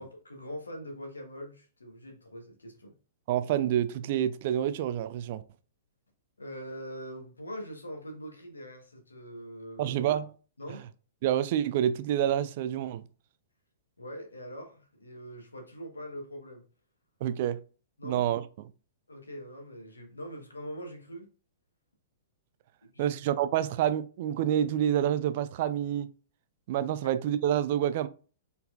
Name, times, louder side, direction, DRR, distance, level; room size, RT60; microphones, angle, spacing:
voice 1, 0.0-2.9 6.4-10.0 10.6-10.9 14.0-16.6 18.0-18.3 19.1-21.3 22.8-23.2, equal, 80° left, 1.2 m, -43 dB
voice 2, 3.3-5.4 9.8-10.3 11.2-13.0 17.2-17.6 18.0-18.7 23.0-26.1 26.7-28.1, right 10 dB, 45° right, 0.4 m, -28 dB
4.4 x 4.0 x 2.4 m
figure-of-eight pair, 105°, 0 cm